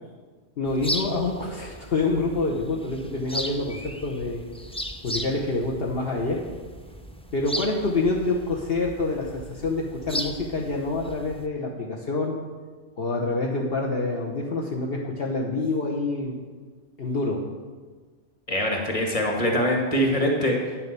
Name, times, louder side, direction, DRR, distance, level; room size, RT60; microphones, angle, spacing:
voice 1, 0.6-4.4 5.0-6.4 7.3-12.4 13.0-16.4 17.0-17.5, left 3 dB, 60° left, -1 dB, 1.3 m, -27 dB
sound 1, 0.7-11.5, equal, 10° left, 0.4 m, -36 dB
voice 2, 18.5-20.6, equal, 30° left, 0 dB, 2.0 m, -23 dB
9.8 x 7.5 x 6.8 m, 1.4 s
omnidirectional pair, 1.2 m